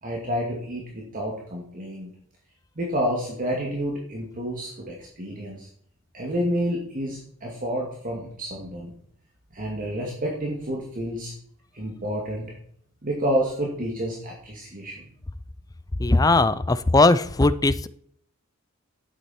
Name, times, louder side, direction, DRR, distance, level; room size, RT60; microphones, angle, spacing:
voice 1, 0.0-2.1 2.8-5.7 6.1-8.9 9.5-11.3 11.7-12.5 13.0-15.1, equal, 40° right, -2 dB, 2.3 m, -29 dB
voice 2, 16.0-17.9, left 2 dB, 15° left, 15 dB, 0.5 m, -19 dB
11.5 x 8.7 x 4.4 m, 0.64 s
head